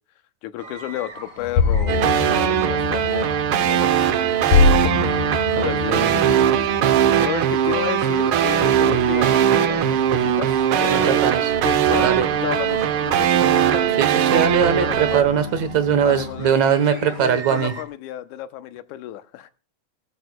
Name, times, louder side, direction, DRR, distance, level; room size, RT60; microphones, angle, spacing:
voice 1, 0.4-4.5 4.8-6.7 7.2-11.2 11.6-12.1 12.4-14.0 14.3-15.3 16.0-19.5, left 13 dB, 85° left, 11 dB, 2.2 m, -32 dB
sound 1, 0.6-17.8, right 3 dB, 35° right, 1.7 m, -40 dB
sound 2, 1.4-16.5, left 5 dB, 70° left, 2.6 m, -27 dB
sound 3, 1.9-15.2, right 10 dB, 85° right, 1.1 m, -20 dB
voice 2, 5.6-6.1 10.9-11.5 12.0-12.3 14.0-17.7, right 8 dB, 70° right, 11 dB, 2.4 m, -21 dB
19.0 x 13.0 x 2.2 m, 0.34 s
omnidirectional pair, 3.4 m